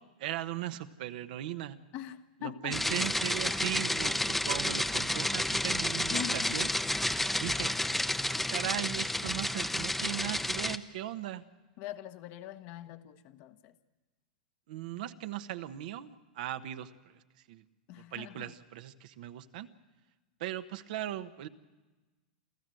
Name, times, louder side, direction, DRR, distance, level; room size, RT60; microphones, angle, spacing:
voice 1, 0.0-1.8 2.4-6.7 7.4-7.7 8.3-11.4 14.7-17.2 17.5-17.6 17.9-19.7 20.4-21.5, right 13 dB, 70° right, 10 dB, 1.1 m, -38 dB
voice 2, 1.9-2.8 4.5-4.8 6.1-6.6 7.4-7.6 11.8-13.8 17.9-18.5, left 11 dB, 50° left, 9 dB, 1.2 m, -43 dB
sound 1, 2.7-10.8, left 1 dB, 5° left, 0.8 m, -31 dB
28.0 x 13.5 x 7.7 m, 1.2 s
hypercardioid pair, 115°, 5 cm